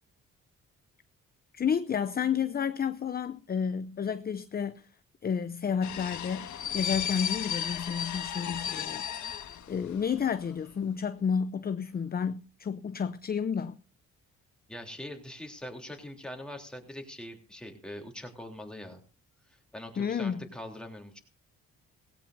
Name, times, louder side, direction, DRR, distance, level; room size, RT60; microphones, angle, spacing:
voice 1, 1.5-4.9 5.2-9.3 9.7-13.8 20.0-20.4, left 7 dB, 30° left, 0.6 m, -31 dB
sound 1, 5.8-10.2 10.5-10.6, left 9 dB, 70° left, 1.6 m, -34 dB
voice 2, 14.7-19.0 19.5-21.2, left 1 dB, 5° left, 3.4 m, -43 dB
18.0 x 16.5 x 2.6 m
cardioid pair, 90°, 30 cm